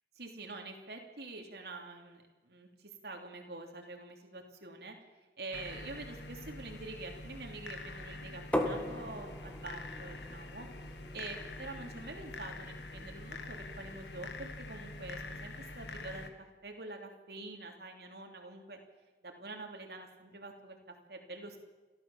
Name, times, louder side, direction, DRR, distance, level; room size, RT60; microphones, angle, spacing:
voice 1, 0.2-5.0 5.4-10.7 11.1-16.3 16.6-18.8 19.2-20.8 21.1-21.6, right 2 dB, 65° right, 2 dB, 3.1 m, -46 dB
sound 1, 5.5-16.3, left 2 dB, 80° left, 1.8 m, -45 dB
sound 2, 8.5-14.2, left 1 dB, 5° left, 1.7 m, -40 dB
29.0 x 13.0 x 7.3 m, 1.2 s
head